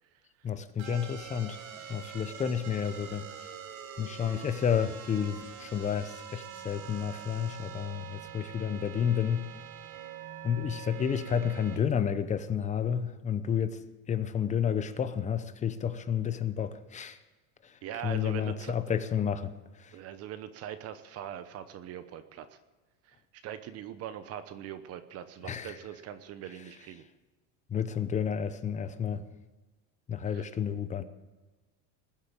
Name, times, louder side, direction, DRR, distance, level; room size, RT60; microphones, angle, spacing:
voice 1, 0.4-1.6 1.9-3.3 4.0-9.5 10.4-13.8 14.1-17.2 17.6-19.5 19.8-20.0 25.4-25.8 26.5-26.6 27.7-29.3 30.1-31.0, left 8 dB, 20° left, 11 dB, 0.7 m, -31 dB
sound 1, 0.8-11.8, right 9 dB, 85° right, 3.5 m, -45 dB
voice 2, 17.8-18.7 19.9-22.5 23.1-23.2 23.4-27.0 30.3-30.4, right 10 dB, 35° right, 11 dB, 0.9 m, -41 dB
20.0 x 7.9 x 8.8 m, 1.2 s
supercardioid pair, 150°, 41 cm